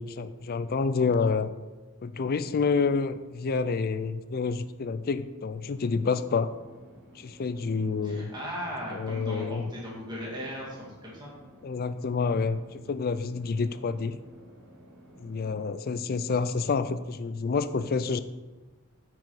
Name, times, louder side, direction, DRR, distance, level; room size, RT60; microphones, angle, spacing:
voice 1, 0.0-1.5 2.0-6.5 7.2-8.3 8.9-9.7 11.6-14.2 15.2-18.2, left 4 dB, 45° left, 13 dB, 0.4 m, -28 dB
sound 1, 5.7-15.7, equal, 55° right, 1.8 m, -53 dB
voice 2, 8.0-11.3, equal, 20° right, -4 dB, 2.1 m, -37 dB
9.2 x 4.9 x 4.6 m, 1.2 s
head